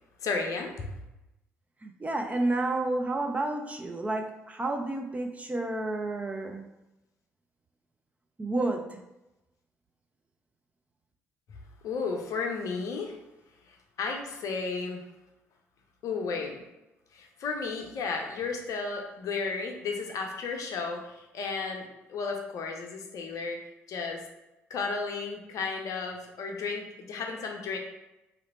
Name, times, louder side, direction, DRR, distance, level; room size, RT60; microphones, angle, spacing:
voice 1, 0.2-0.9 11.8-13.2 13.7-15.0 16.0-16.6 17.1-23.6 23.9-24.2 24.7-27.8, left 4 dB, 50° left, 2 dB, 0.6 m, -33 dB
voice 2, 1.8-6.7 8.4-9.0, right 2 dB, 20° right, 3 dB, 0.5 m, -30 dB
3.0 x 2.9 x 4.0 m, 0.96 s
figure-of-eight pair, 45°, 7 cm